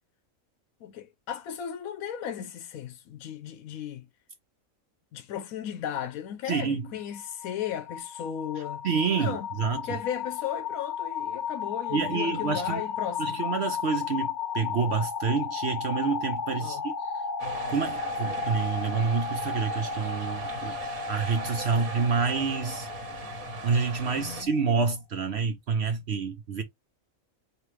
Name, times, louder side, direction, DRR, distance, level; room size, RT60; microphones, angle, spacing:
voice 1, 0.8-4.1 5.1-8.9 9.1-9.5 9.8-13.4 16.6-16.9 21.6-21.9 24.1-24.5, left 9 dB, 90° left, 1.1 m, -36 dB
voice 2, 6.5-6.9 8.8-9.8 11.9-12.8 13.2-16.9 17.7-20.8 21.1-22.9 23.6-26.6, right 5 dB, 60° right, 0.8 m, -28 dB
sound 1, 7.0-24.9, left 6 dB, 60° left, 1.0 m, -34 dB
sound 2, 17.4-24.4, right 3 dB, 90° right, 1.5 m, -40 dB
4.3 x 3.1 x 3.2 m
omnidirectional pair, 1.4 m